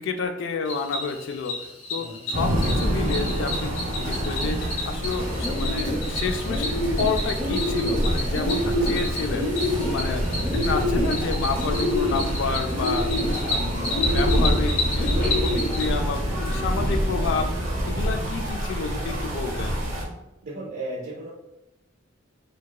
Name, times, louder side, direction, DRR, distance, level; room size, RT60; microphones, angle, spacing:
voice 1, 0.0-6.7 7.0-9.5 9.9-10.2 10.7-13.1 13.5-17.5 17.9-19.8, left 4 dB, 65° left, 6 dB, 0.3 m, -30 dB
Cricket, 0.6-15.8, left 2 dB, 85° left, 0.7 m, -32 dB
voice 2, 1.9-2.3 9.9-10.2 12.8-13.1 14.1-14.3 18.3-18.4 20.4-21.3, right 2 dB, 50° right, -5 dB, 0.5 m, -37 dB
sound 1, 2.3-20.0, equal, 90° right, 0.8 m, -27 dB
Bird, 5.2-17.9, left 1 dB, 5° left, 0.7 m, -28 dB
2.8 x 2.2 x 2.2 m, 0.91 s
head